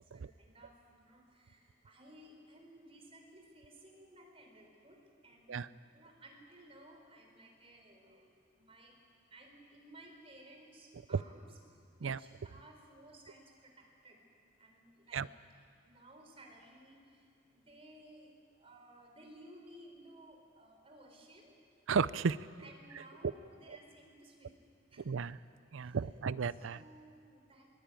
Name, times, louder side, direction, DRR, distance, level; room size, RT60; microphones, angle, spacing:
voice 1, 0.0-9.0 9.3-14.2 14.6-15.3 15.8-21.5 22.6-24.6 24.9-25.1 25.8-26.0 26.5-27.7, right 1 dB, 30° right, 2 dB, 4.2 m, -58 dB
voice 2, 21.9-22.4 25.1-25.4 25.7-26.8, right 5 dB, 85° right, 17 dB, 0.5 m, -33 dB
22.0 x 20.0 x 9.1 m, 2.2 s
head